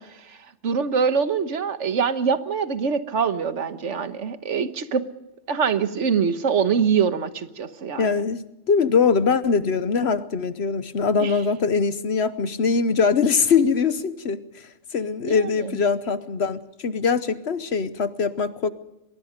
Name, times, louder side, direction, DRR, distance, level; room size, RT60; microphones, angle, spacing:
voice 1, 0.6-5.0 5.5-8.1 11.2-11.4 15.2-15.8, right 6 dB, 75° right, 1.5 m, -24 dB
voice 2, 8.0-18.7, left 5 dB, 60° left, 1.1 m, -22 dB
23.5 x 22.5 x 5.1 m
omnidirectional pair, 1.2 m